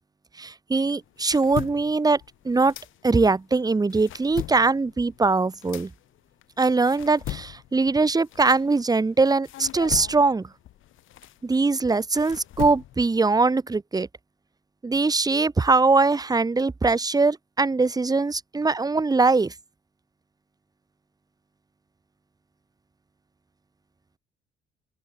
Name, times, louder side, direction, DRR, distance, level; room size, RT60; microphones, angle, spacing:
voice 1, 0.4-2.7 3.0-5.9 6.6-10.5 11.4-14.1 14.8-19.5, right 3 dB, 20° right, 1.0 m, -22 dB
sound 1, 0.9-3.4 3.8-9.1 9.4-13.2, left 14 dB, 80° left, 3.3 m, -39 dB
open air
cardioid pair, 90°, 20 cm